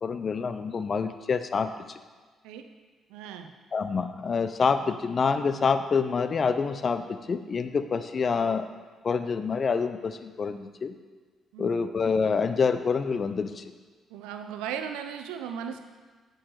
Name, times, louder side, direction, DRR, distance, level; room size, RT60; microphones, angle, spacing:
voice 1, 0.0-2.0 3.7-8.7 9.0-11.0 11.6-13.6, left 5 dB, 50° left, 10 dB, 0.6 m, -27 dB
voice 2, 3.1-3.5 11.5-11.8 14.1-15.8, right 8 dB, 90° right, 7 dB, 0.6 m, -36 dB
8.8 x 6.4 x 4.8 m, 1.4 s
supercardioid pair, 60°, 0 cm